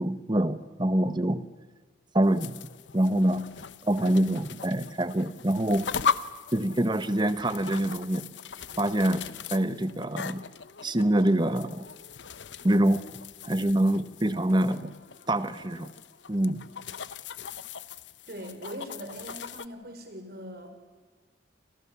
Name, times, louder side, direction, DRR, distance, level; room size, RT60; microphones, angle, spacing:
voice 1, 0.0-1.4 2.1-2.5 2.9-3.5 3.8-5.9 6.5-8.3 8.8-10.5 10.8-11.9 12.6-13.0 13.4-14.9 15.3-15.9 16.3-16.7, right 1 dB, 25° right, 13 dB, 1.1 m, -25 dB
sound 1, 2.2-19.7, left 6 dB, 90° left, 0.9 m, -38 dB
voice 2, 18.3-20.7, equal, 55° right, 6 dB, 4.9 m, -41 dB
28.0 x 27.5 x 7.0 m, 1.5 s
head